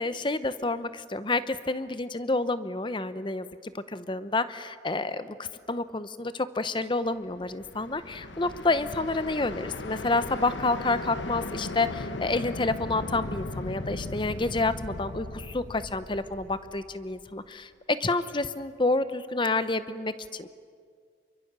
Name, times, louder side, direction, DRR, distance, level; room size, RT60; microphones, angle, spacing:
voice 1, 0.0-20.5, left 3 dB, 25° left, 13 dB, 0.8 m, -29 dB
sound 1, 7.3-17.3, left 2 dB, 85° left, 1.1 m, -37 dB
27.5 x 23.5 x 6.8 m, 2.1 s
head